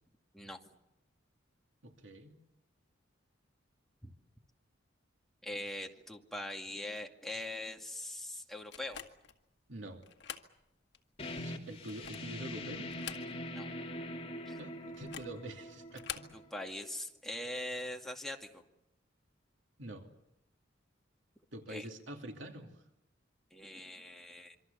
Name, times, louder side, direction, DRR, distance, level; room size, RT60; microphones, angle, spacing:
voice 1, 1.8-2.3 9.7-10.0 11.3-12.9 14.6-16.3 19.8-20.1 21.5-22.8, right 1 dB, 80° right, 3 dB, 2.6 m, -46 dB
voice 2, 5.4-9.0 13.6-13.7 14.5-14.6 16.3-18.6 21.7-21.9 23.5-24.6, left 1 dB, ahead, 1 dB, 2.3 m, -42 dB
sound 1, 8.7-9.4 10.0-10.5 10.9-11.0 11.7-12.4 12.8-13.6 13.9-14.0 14.9-15.4 15.9-16.3, left 9 dB, 65° left, 2.0 m, -45 dB
sound 2, 11.2-16.6, left 1 dB, 35° left, 2.8 m, -43 dB
26.5 x 24.5 x 7.0 m, 0.86 s
head